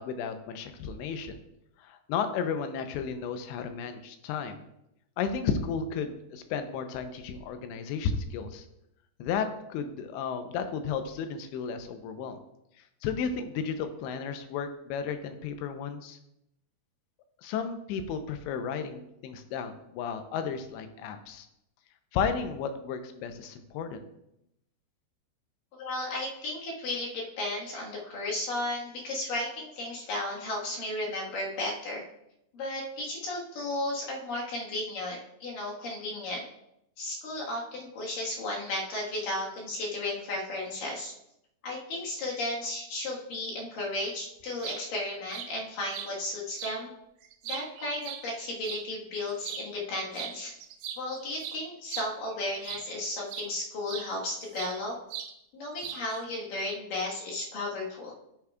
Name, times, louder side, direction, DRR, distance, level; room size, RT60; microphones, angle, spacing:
voice 1, 0.0-1.4 1.8-4.6 5.2-8.6 9.2-12.4 13.0-16.2 17.4-21.5 22.1-24.0, left 6 dB, 85° left, 8 dB, 2.9 m, -33 dB
voice 2, 25.8-32.0 32.5-36.4 37.0-41.1 41.6-46.9 47.4-50.6 51.0-55.0 55.5-58.1, left 1 dB, 60° left, -3 dB, 2.7 m, -34 dB
sound 1, 44.4-44.8 45.3-45.5 45.9-46.1 46.6-46.8 47.2-48.8 49.4-49.7 50.1-50.4 50.6-52.9 53.3-53.5 53.9-54.8 55.1-55.3 55.8-56.2, right 9 dB, 90° right, 3.0 m, -39 dB
10.5 x 8.5 x 2.3 m, 0.82 s
omnidirectional pair, 5.2 m